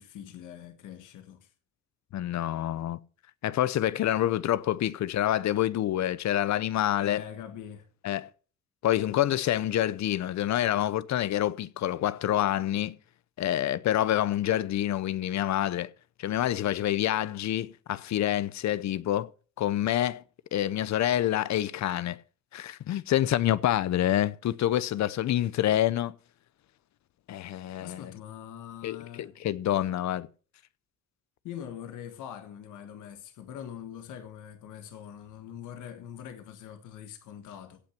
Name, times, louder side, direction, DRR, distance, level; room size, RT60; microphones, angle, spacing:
voice 1, 0.0-1.5 7.0-7.9 27.8-29.3 31.4-37.8, left 9 dB, 85° left, 1.5 m, -43 dB
voice 2, 2.1-3.0 3.4-7.2 8.0-8.3 8.8-13.0 13.4-15.9 16.2-19.3 19.6-20.2 20.5-22.2 22.5-26.2 27.3-28.1 28.8-30.3, left 12 dB, 65° left, 0.7 m, -27 dB
16.5 x 6.0 x 5.9 m
cardioid pair, 90°, 30 cm